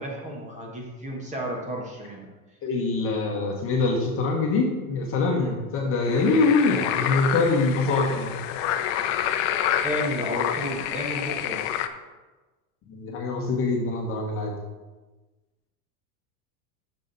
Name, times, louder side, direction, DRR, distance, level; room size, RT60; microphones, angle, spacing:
voice 1, 0.0-2.3 5.3-5.5 9.8-11.6, equal, 15° right, -1 dB, 1.4 m, -32 dB
voice 2, 2.6-8.3 12.9-14.5, left 3 dB, 30° left, 0 dB, 1.3 m, -24 dB
sound 1, 6.0-11.9, left 10 dB, 55° left, 0.7 m, -28 dB
9.8 x 6.7 x 4.1 m, 1.2 s
supercardioid pair, 155°, 45 cm